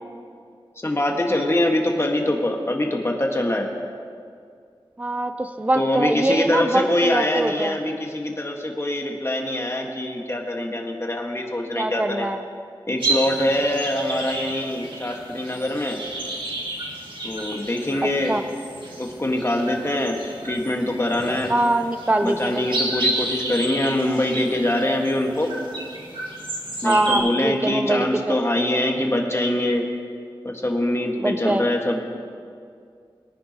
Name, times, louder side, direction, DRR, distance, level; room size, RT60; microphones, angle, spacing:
voice 1, 0.8-3.7 5.7-12.3 12.9-16.0 17.2-18.4 19.0-21.5 22.2-25.5 26.8-29.9 30.4-32.0, left 1 dB, 30° left, 1 dB, 1.6 m, -24 dB
voice 2, 5.0-7.8 11.7-12.4 18.3-18.4 21.5-22.6 26.8-28.4 31.2-31.6, right 1 dB, 15° right, 8 dB, 0.6 m, -23 dB
sound 1, 13.0-27.2, right 2 dB, 65° right, 2.2 m, -31 dB
22.0 x 10.0 x 2.9 m, 2.3 s
wide cardioid pair, 80°, 9 cm